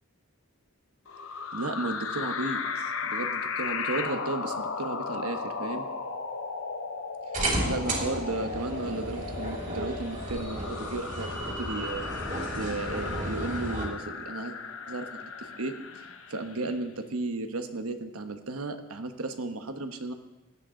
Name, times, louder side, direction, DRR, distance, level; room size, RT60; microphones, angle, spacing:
sound 1, 1.1-16.7, left 5 dB, 65° left, 1.0 m, -36 dB
voice 1, 1.5-5.9 7.3-12.1 12.6-14.5 14.9-20.1, right 2 dB, 80° right, 7 dB, 1.1 m, -34 dB
sound 2, 7.3-13.9, right 1 dB, 35° right, 2.9 m, -33 dB
16.5 x 11.5 x 3.9 m, 1.0 s
head